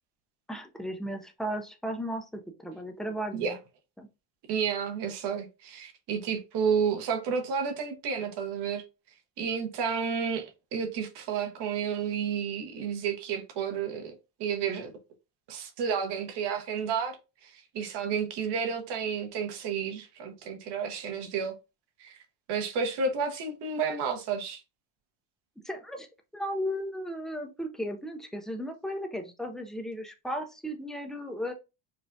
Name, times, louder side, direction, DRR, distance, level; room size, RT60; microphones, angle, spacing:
voice 1, 0.5-3.6 4.0-4.1 25.6-26.1 26.3-31.5, equal, ahead, 0.3 m, -35 dB
voice 2, 4.5-8.8 9.4-14.9 15.5-17.2 17.4-21.5 22.0-22.2 22.5-24.6, right 6 dB, 60° right, 1.1 m, -31 dB
5.1 x 2.3 x 2.6 m
cardioid pair, 130°, 45 cm